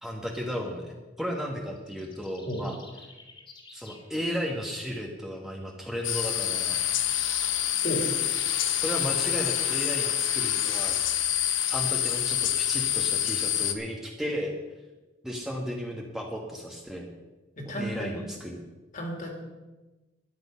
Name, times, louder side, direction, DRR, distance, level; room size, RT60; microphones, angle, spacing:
voice 1, 0.0-2.8 3.7-6.8 8.8-11.0 11.7-14.5 15.2-17.1 17.8-18.6, equal, ahead, 0 dB, 1.4 m, -34 dB
sound 1, 1.8-4.1 10.7-13.2, left 3 dB, 25° left, 2.6 m, -51 dB
sound 2, 6.0-13.7, left 11 dB, 90° left, 1.0 m, -27 dB
voice 2, 17.6-18.3 18.9-19.3, equal, 45° left, 2 dB, 2.9 m, -33 dB
13.0 x 11.0 x 5.7 m, 1.1 s
head